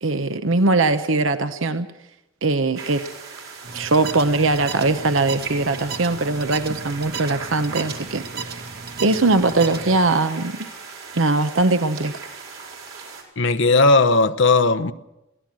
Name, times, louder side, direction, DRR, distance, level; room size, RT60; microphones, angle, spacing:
voice 1, 0.0-1.9 2.4-3.0 3.7-8.7 9.0-10.7 11.1-12.2, right 3 dB, 70° right, 0.9 m, -21 dB
sound 1, 2.7-13.2, right 5 dB, 90° right, 4.5 m, -38 dB
sound 2, 3.6-10.0, right 4 dB, 50° right, 1.5 m, -35 dB
voice 2, 13.4-14.9, left 3 dB, 65° left, 0.9 m, -16 dB
22.0 x 16.5 x 7.6 m
head